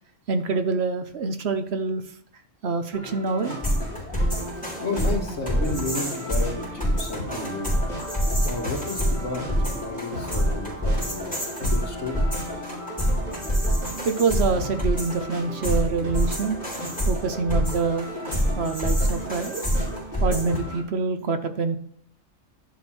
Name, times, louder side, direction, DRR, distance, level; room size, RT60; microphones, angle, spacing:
voice 1, 0.3-2.0 2.6-3.5 14.0-16.6 17.1-18.1 18.6-19.6 20.2-21.8, right 4 dB, 60° right, 8 dB, 1.0 m, -26 dB
sound 1, 2.9-20.8, equal, 90° right, 3.8 m, -36 dB
sound 2, 3.4-20.6, equal, 5° left, 4.7 m, -26 dB
voice 2, 4.8-7.7 8.4-12.3, left 2 dB, 65° left, 0 dB, 2.2 m, -32 dB
sound 3, 7.3-18.9, equal, 40° right, 4.1 m, -45 dB
11.5 x 6.2 x 4.3 m, 0.66 s
omnidirectional pair, 1.3 m